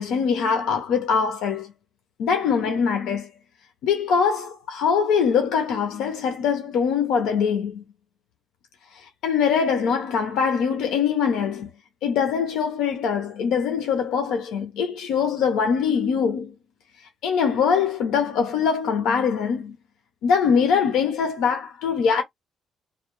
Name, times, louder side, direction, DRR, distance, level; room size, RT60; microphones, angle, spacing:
voice 1, 0.0-1.7 2.2-3.3 3.8-7.8 9.2-11.7 12.0-16.5 17.2-19.8 20.2-22.2, left 6 dB, 90° left, 0.6 m, -23 dB
2.3 x 2.2 x 2.9 m
cardioid pair, 90°, 0 cm